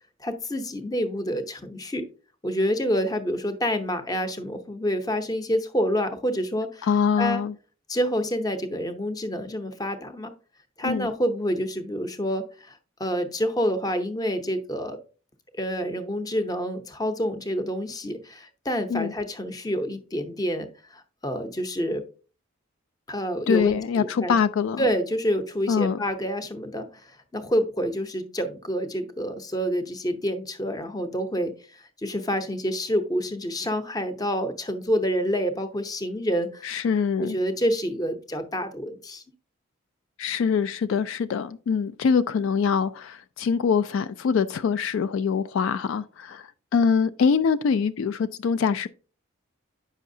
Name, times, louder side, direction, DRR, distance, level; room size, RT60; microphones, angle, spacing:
voice 1, 0.2-2.1 2.4-6.9 7.2-7.4 7.9-10.3 10.8-15.0 15.5-22.1 23.1-24.4 24.8-36.7 37.2-39.2, equal, 20° left, 0.7 m, -28 dB
voice 2, 6.8-7.5 10.8-11.1 18.9-19.1 23.5-24.9 25.7-26.0 36.6-37.4 40.2-48.9, left 6 dB, 70° left, 0.3 m, -24 dB
8.3 x 5.7 x 2.6 m
head